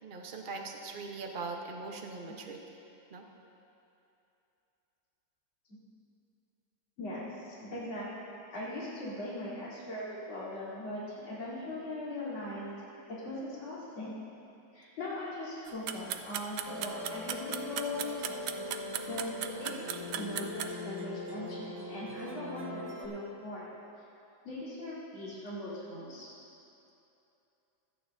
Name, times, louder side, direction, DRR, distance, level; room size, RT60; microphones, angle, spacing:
voice 1, 0.0-2.6 3.1-3.2, right 4 dB, 40° right, 2 dB, 0.8 m, -41 dB
voice 2, 7.0-8.1 8.5-14.1 14.7-18.1 19.1-19.8 20.1-23.7 24.4-26.3, left 1 dB, 75° left, -10 dB, 4.3 m, -40 dB
sound 1, 15.7-20.7, right 10 dB, 85° right, 1.4 m, -36 dB
Musical instrument, 16.7-23.1, left 2 dB, 5° right, 1.2 m, -41 dB
25.0 x 9.2 x 2.7 m, 2.8 s
omnidirectional pair, 2.2 m